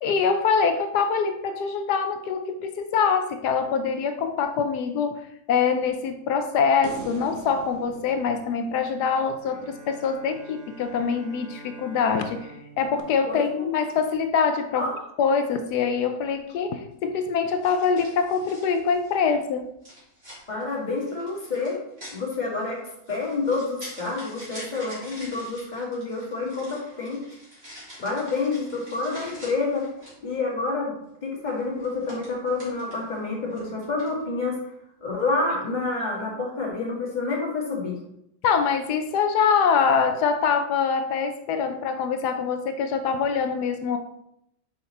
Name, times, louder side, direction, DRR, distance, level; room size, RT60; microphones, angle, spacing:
voice 1, 0.0-14.9 15.2-19.7 38.4-44.0, left 6 dB, 70° left, 8 dB, 1.1 m, -24 dB
sound 1, 6.8-10.2 13.0-13.1, right 3 dB, 60° right, 1.0 m, -42 dB
Bowed string instrument, 9.4-14.3, right 3 dB, 90° right, 1.9 m, -46 dB
voice 2, 13.3-13.7 14.8-15.0 20.5-21.8 22.1-22.8 23.1-27.2 28.0-29.9 30.2-31.0 31.2-34.6 35.0-38.0, left 3 dB, 25° left, -3 dB, 1.7 m, -28 dB
sound 2, 16.3-16.5 17.6-19.3 19.8-30.3 31.5-33.2 33.5-34.2, equal, 35° right, 2.8 m, -46 dB
5.7 x 5.0 x 4.1 m, 0.77 s
omnidirectional pair, 1.9 m